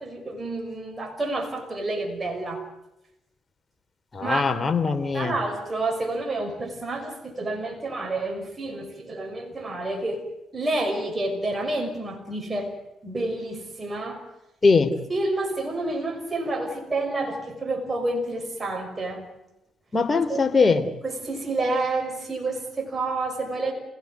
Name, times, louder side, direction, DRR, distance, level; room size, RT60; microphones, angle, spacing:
voice 1, 0.0-2.6 4.2-4.4 5.1-12.8 13.0-14.2 15.1-19.3 20.3-20.4 21.0-23.7, right 2 dB, 30° right, 4 dB, 5.7 m, -29 dB
voice 2, 4.1-5.3 14.6-14.9 19.9-20.8, left 4 dB, 30° left, 7 dB, 3.1 m, -21 dB
28.0 x 17.0 x 9.4 m, 0.93 s
supercardioid pair, 55°, 0 cm